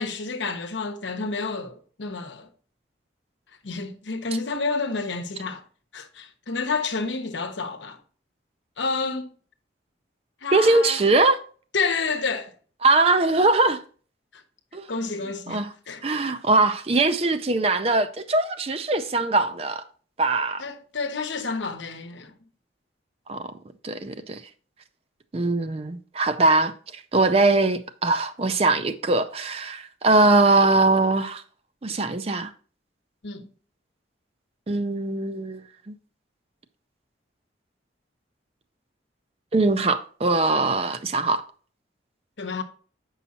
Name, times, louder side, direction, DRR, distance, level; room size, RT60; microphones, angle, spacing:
voice 1, 0.0-2.5 3.6-5.6 5.9-8.0 8.8-9.3 10.4-11.0 11.7-12.5 14.3-14.4 14.9-16.0 20.6-22.3 33.2-33.5 42.4-42.6, left 4 dB, 80° left, 0.9 m, -29 dB
voice 2, 10.5-11.4 12.8-13.8 14.7-14.8 15.5-15.7 16.0-19.8 20.2-20.6 23.3-23.5 23.8-24.4 25.3-31.4 31.8-32.5 34.7-35.9 39.5-41.4, right 3 dB, 30° right, 0.5 m, -21 dB
8.3 x 5.5 x 2.8 m
head